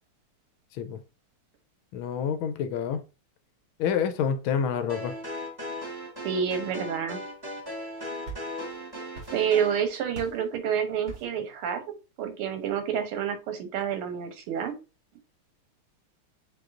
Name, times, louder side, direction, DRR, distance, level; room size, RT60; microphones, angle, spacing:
voice 1, 1.9-3.0 3.8-5.1, left 7 dB, 75° left, 1.3 m, -28 dB
sound 1, 4.9-9.8, left 1 dB, 15° right, 0.8 m, -37 dB
voice 2, 6.2-7.2 9.3-11.8 12.2-14.7, right 8 dB, 85° right, 1.7 m, -28 dB
sound 2, 7.9-8.8 9.1-9.7 10.1-10.5 11.1-11.5, right 3 dB, 55° right, 2.3 m, -43 dB
7.7 x 2.7 x 2.5 m
omnidirectional pair, 2.4 m